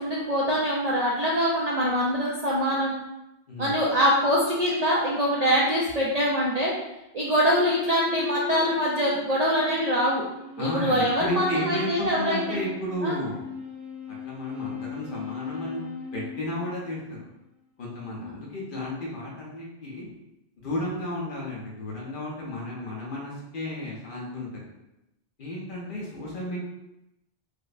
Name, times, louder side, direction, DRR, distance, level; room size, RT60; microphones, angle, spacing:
voice 1, 0.0-2.9 3.6-6.7 7.1-10.2 10.6-12.6 13.0-13.2 18.2-18.3, equal, 55° right, -5 dB, 0.4 m, -24 dB
sound 1, 7.6-17.3, left 5 dB, 75° right, 1.3 m, -38 dB
voice 2, 10.6-13.4 14.1-15.8 16.1-17.2 17.8-20.1 20.6-24.7 25.4-26.6, left 1 dB, 55° left, -4 dB, 0.9 m, -33 dB
4.8 x 2.1 x 2.4 m, 0.91 s
omnidirectional pair, 1.2 m